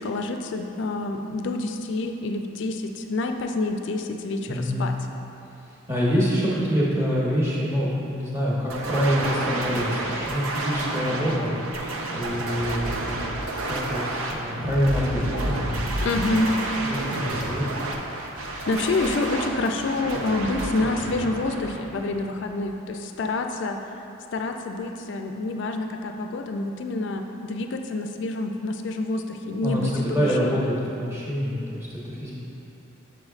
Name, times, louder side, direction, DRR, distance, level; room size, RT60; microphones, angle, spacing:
voice 1, 0.0-4.9 16.0-16.5 18.5-23.9 24.3-29.9 30.2-30.6, left 2 dB, 55° left, 5 dB, 0.3 m, -28 dB
voice 2, 4.5-4.9 5.7-13.3 13.6-16.2 16.8-17.9 29.6-32.3, equal, 10° right, -7 dB, 1.0 m, -26 dB
sound 1, 8.7-22.6, right 2 dB, 85° right, 0.6 m, -30 dB
6.7 x 6.3 x 2.4 m, 2.8 s
head